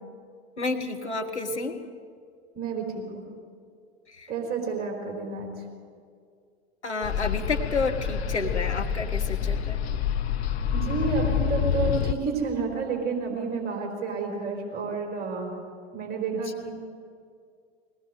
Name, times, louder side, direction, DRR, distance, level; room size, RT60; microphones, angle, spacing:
voice 1, 0.6-1.7 4.1-4.3 6.8-9.8 16.3-16.4, left 3 dB, 85° left, 3 dB, 1.6 m, -30 dB
voice 2, 2.5-2.9 3.1-3.2 4.3-5.6 10.7-15.5 15.9-16.7, right 4 dB, 30° right, 2 dB, 4.2 m, -30 dB
sound 1, 7.0-12.2, left 8 dB, 70° left, 0.9 m, -27 dB
21.5 x 18.5 x 8.0 m, 2.2 s
figure-of-eight pair, 80°, 33 cm